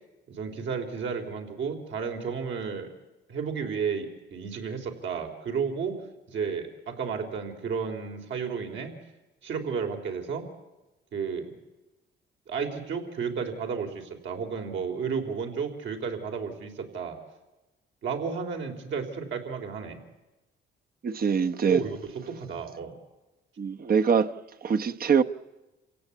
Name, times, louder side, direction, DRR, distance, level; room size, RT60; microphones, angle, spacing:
voice 1, 0.3-2.9 3.3-6.0 6.3-9.0 9.4-10.5 11.1-11.5 12.5-17.2 18.0-20.0 21.7-23.0, right 6 dB, 70° right, 3.8 m, -32 dB
voice 2, 21.0-21.8 23.6-24.3 24.6-25.2, right 6 dB, 50° right, 1.1 m, -23 dB
27.5 x 17.0 x 8.5 m
cardioid pair, 90°, 20 cm